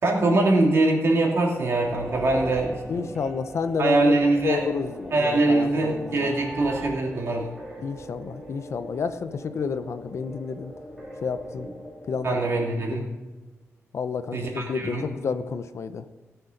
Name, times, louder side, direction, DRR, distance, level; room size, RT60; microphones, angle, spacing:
voice 1, 0.0-3.1 3.8-4.6 5.1-7.5 12.2-13.0 14.3-15.1, right 2 dB, 60° right, -1 dB, 2.8 m, -23 dB
sound 1, 1.3-12.6, equal, 5° right, 2.6 m, -40 dB
voice 2, 2.9-6.3 7.8-10.7 11.2-11.7 12.1-12.4 13.9-16.0, left 5 dB, 65° left, 11 dB, 0.7 m, -30 dB
17.0 x 6.8 x 5.2 m, 1.2 s
wide cardioid pair, 140°, 5 cm